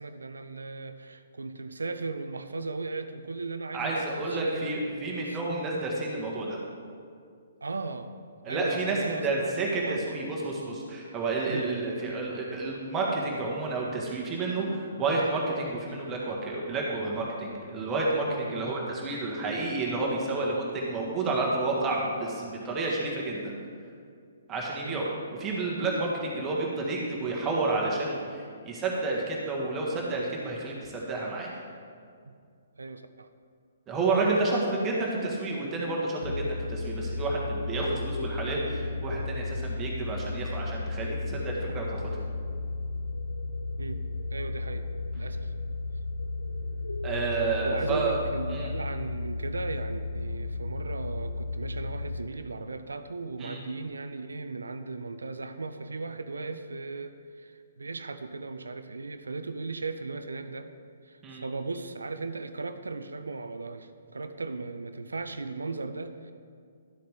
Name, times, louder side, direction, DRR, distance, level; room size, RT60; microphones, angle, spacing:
voice 1, 0.0-5.4 7.6-8.1 8.5-9.3 9.8-10.2 11.5-11.7 18.4-18.6 24.8-25.0 32.3-32.4 32.8-33.3 43.8-44.0 44.3-44.9 45.1-45.6 47.6-60.7 61.1-66.3, right 3 dB, 75° right, 10 dB, 0.5 m, -37 dB
voice 2, 3.7-6.6 8.4-23.5 24.5-25.0 25.4-31.5 33.9-42.0 47.0-48.2 48.5-48.7 53.4-53.6 61.2-61.4, right 2 dB, 20° right, -3 dB, 1.6 m, -30 dB
sound 1, 36.2-52.2, left 2 dB, 75° left, 0.6 m, -34 dB
12.0 x 7.6 x 3.6 m, 2.2 s
figure-of-eight pair, 125°, 0 cm